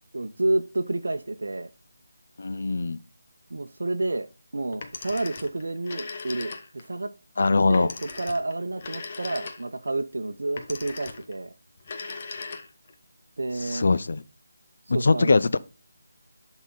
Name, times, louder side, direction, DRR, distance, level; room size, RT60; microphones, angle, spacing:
voice 1, 0.1-1.7 3.5-4.3 4.5-7.1 7.7-11.5 13.4-13.8 14.9-15.3, right 2 dB, 75° right, 0.7 m, -29 dB
voice 2, 2.4-3.0 7.4-7.9 13.6-14.2 14.9-15.6, left 3 dB, 60° left, 0.6 m, -22 dB
Telephone, 4.7-6.9 7.7-9.9 10.6-11.4 11.8-12.9, left 4 dB, 35° left, 1.0 m, -39 dB
11.0 x 4.1 x 3.9 m
figure-of-eight pair, 165°, 0 cm